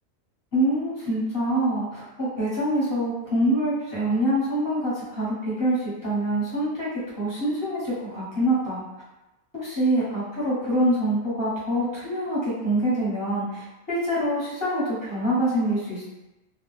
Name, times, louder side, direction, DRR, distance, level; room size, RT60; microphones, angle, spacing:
voice 1, 0.5-8.8 9.5-16.0, right 1 dB, 20° left, -9 dB, 1.1 m, -25 dB
2.4 x 2.2 x 3.2 m, 1.0 s
omnidirectional pair, 1.1 m